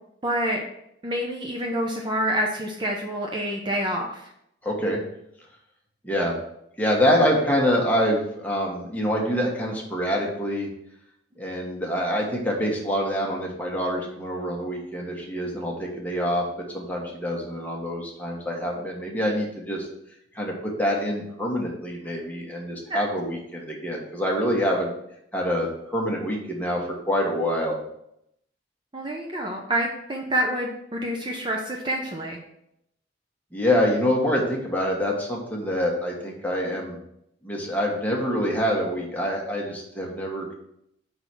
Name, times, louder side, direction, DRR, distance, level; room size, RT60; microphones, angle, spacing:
voice 1, 0.2-0.6 1.0-4.3 22.9-23.0 28.9-32.4, right 1 dB, 25° right, 0 dB, 0.7 m, -27 dB
voice 2, 4.6-5.0 6.0-6.4 6.8-10.7 11.4-19.9 20.3-24.9 25.3-27.8 33.5-37.0 37.4-40.5, equal, 10° left, -2 dB, 1.3 m, -26 dB
5.5 x 4.0 x 6.0 m, 0.77 s
head